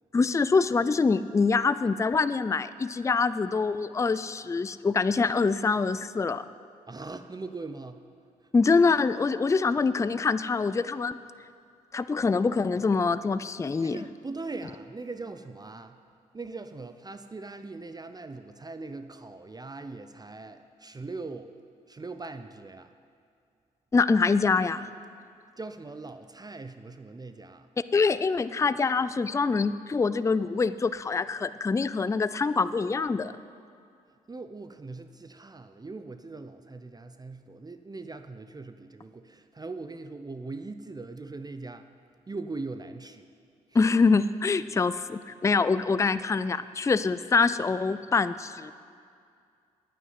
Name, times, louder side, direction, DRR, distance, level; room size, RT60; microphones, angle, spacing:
voice 1, 0.1-6.4 8.5-11.2 11.9-14.0 23.9-24.9 27.9-33.3 43.7-48.7, left 4 dB, 20° left, 14 dB, 0.4 m, -25 dB
voice 2, 6.9-8.0 13.8-16.0 16.3-21.5 21.9-22.9 25.6-27.7 34.3-41.9 42.3-43.3 43.7-43.8, right 3 dB, 25° right, 9 dB, 0.6 m, -40 dB
9.2 x 8.6 x 7.9 m, 2.3 s
hypercardioid pair, 50°, 17 cm